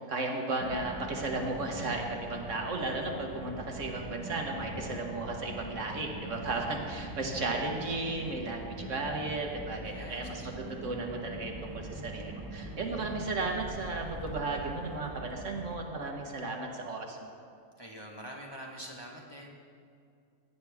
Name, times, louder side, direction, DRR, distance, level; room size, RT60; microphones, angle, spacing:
voice 1, 0.1-10.4 10.8-17.3, right 2 dB, 65° right, 1 dB, 1.6 m, -34 dB
Car, 0.6-15.8, right 1 dB, 20° right, 1.0 m, -43 dB
voice 2, 9.8-10.5 17.8-19.5, equal, 20° left, -3 dB, 1.2 m, -45 dB
16.5 x 9.6 x 3.5 m, 2.4 s
omnidirectional pair, 1.4 m